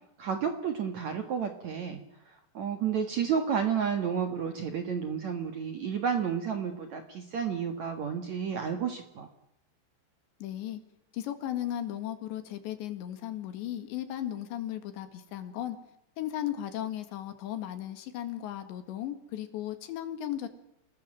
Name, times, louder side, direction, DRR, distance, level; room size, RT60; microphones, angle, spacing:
voice 1, 0.2-2.0 2.5-9.3, right 7 dB, 55° right, 6 dB, 2.1 m, -31 dB
voice 2, 10.4-10.8 11.1-15.8 16.2-20.5, left 12 dB, 75° left, 9 dB, 4.1 m, -36 dB
27.5 x 19.5 x 7.8 m, 0.80 s
omnidirectional pair, 5.2 m